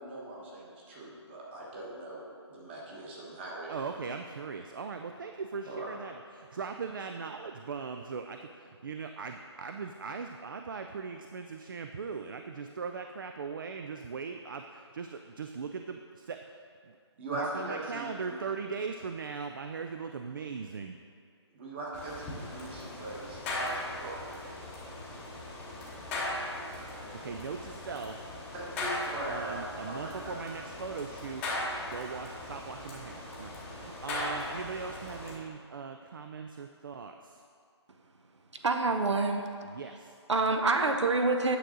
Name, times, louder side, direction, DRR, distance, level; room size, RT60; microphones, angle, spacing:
voice 1, 0.0-2.2 2.5-3.7 5.6-5.9 17.2-18.4 21.5-24.3 24.8-24.9 27.6-27.7 28.5-30.4, right 2 dB, 25° right, -4 dB, 1.3 m, -40 dB
voice 2, 3.7-17.0 17.3-21.0 27.2-28.2 29.2-31.4 31.9-37.4 39.7-40.2, right 5 dB, 50° right, 6 dB, 0.4 m, -39 dB
sound 1, 21.9-35.4, left 1 dB, 10° left, 0.8 m, -39 dB
voice 3, 38.5-39.5 40.3-41.6, right 3 dB, 80° right, 5 dB, 0.8 m, -26 dB
9.4 x 6.2 x 3.8 m, 2.3 s
hypercardioid pair, 165°, 15 cm